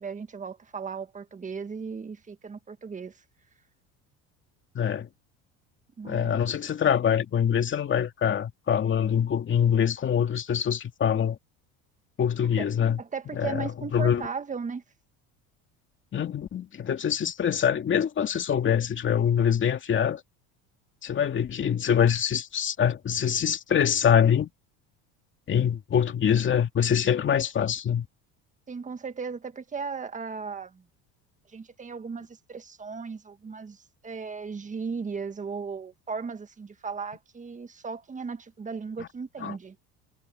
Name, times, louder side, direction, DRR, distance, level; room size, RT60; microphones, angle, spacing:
voice 1, 0.0-3.1 6.0-6.5 12.6-12.7 13.0-14.8 28.7-30.8 31.5-39.8, right 5 dB, 20° right, 1.7 m, -36 dB
voice 2, 4.7-5.1 6.0-11.4 12.2-13.0 13.3-14.2 16.1-20.2 21.0-24.5 25.5-28.1 39.0-39.1 39.4-39.6, left 8 dB, 35° left, 2.4 m, -24 dB
supercardioid pair, 115°, 34 cm